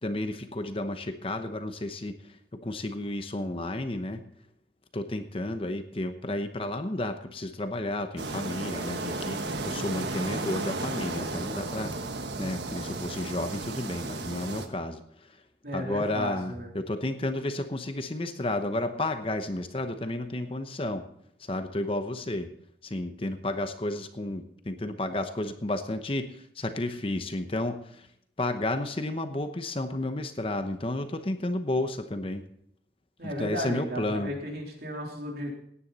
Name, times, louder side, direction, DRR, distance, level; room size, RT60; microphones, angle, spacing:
voice 1, 0.0-2.2 2.6-4.2 4.9-11.9 12.4-15.0 15.7-21.0 21.5-22.5 22.8-26.3 26.6-28.1 28.4-32.4 33.2-34.3, left 1 dB, 30° left, 8 dB, 0.9 m, -32 dB
sound 1, 8.2-14.7, right 2 dB, 75° right, 1.4 m, -34 dB
voice 2, 15.6-16.7 33.2-35.5, equal, 55° right, 0 dB, 3.6 m, -34 dB
17.5 x 9.9 x 4.1 m, 0.70 s
head